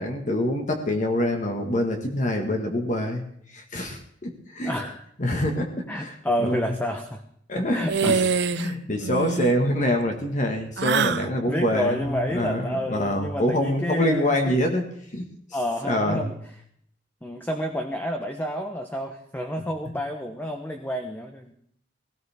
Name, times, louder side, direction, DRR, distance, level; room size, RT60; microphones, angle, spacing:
voice 1, 0.0-4.8 5.2-6.1 6.4-6.6 7.5-8.2 8.5-14.8 15.1-15.3 15.8-16.3, left 1 dB, 40° left, 3 dB, 1.7 m, -25 dB
voice 2, 4.6-5.0 5.9-7.2 7.7-8.3 11.5-14.6 15.5-16.4 17.2-21.5, equal, 10° left, 4 dB, 1.0 m, -29 dB
sound 1, 7.9-8.7 9.0-9.5 10.8-11.3, right 5 dB, 60° right, 0.6 m, -24 dB
17.5 x 17.5 x 3.6 m, 0.66 s
head